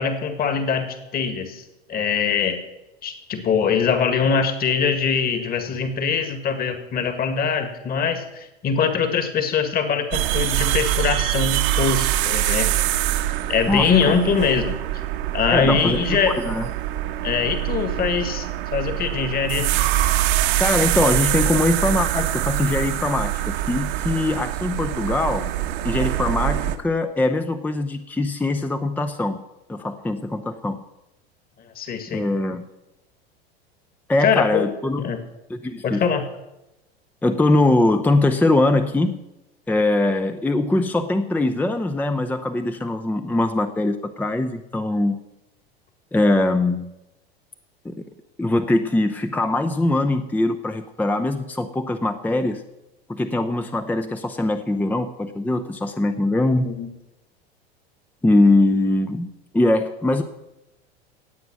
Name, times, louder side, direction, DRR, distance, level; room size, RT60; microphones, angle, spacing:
voice 1, 0.0-1.6 1.9-2.6 3.0-12.7 13.5-14.8 15.3-16.4 17.2-18.5 18.7-19.7 31.8-32.2 34.2-34.7 35.0-35.2 35.8-36.2 56.6-56.9, left 6 dB, 30° left, 8 dB, 1.9 m, -22 dB
sound 1, 10.1-26.8, right 14 dB, 55° right, 1.3 m, -24 dB
voice 2, 13.7-14.1 15.5-16.2 16.4-16.7 20.6-25.5 25.8-29.4 29.7-30.8 32.1-32.7 34.1-35.1 35.5-36.0 37.2-39.2 39.7-45.2 46.1-46.9 47.8-48.0 48.4-52.6 53.1-56.7 58.2-59.3 59.5-60.2, left 2 dB, 5° left, 8 dB, 0.7 m, -22 dB
18.0 x 8.0 x 6.2 m, 0.96 s
figure-of-eight pair, 85°, 31 cm